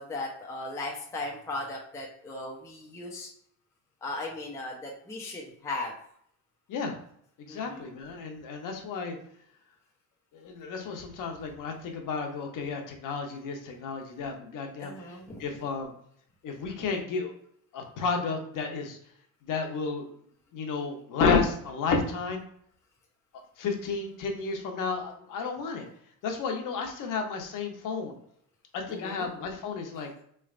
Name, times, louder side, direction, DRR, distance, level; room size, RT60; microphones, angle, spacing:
voice 1, 0.0-3.3 4.0-5.9 7.5-7.9 14.8-15.4 28.9-29.3, left 2 dB, 10° left, -2 dB, 0.4 m, -37 dB
voice 2, 7.4-9.2 10.3-14.9 15.4-15.9 16.4-17.3 17.7-19.0 19.4-20.1 20.5-22.4 23.6-25.9 26.2-28.2 28.7-30.1, left 4 dB, 55° left, 3 dB, 0.8 m, -31 dB
3.9 x 3.2 x 2.4 m, 0.67 s
cardioid pair, 165°, 39 cm